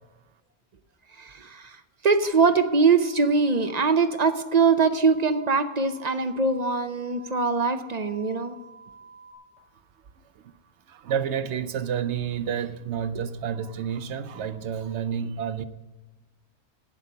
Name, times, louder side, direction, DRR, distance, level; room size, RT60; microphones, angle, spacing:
voice 1, 1.2-1.8 2.0-8.6, right 4 dB, 40° right, 0.8 m, -22 dB
sound 1, 2.2-9.3, right 5 dB, 10° left, 3.5 m, -49 dB
voice 2, 10.9-15.6, right 8 dB, 85° right, 1.0 m, -30 dB
11.5 x 8.9 x 5.5 m
omnidirectional pair, 1.1 m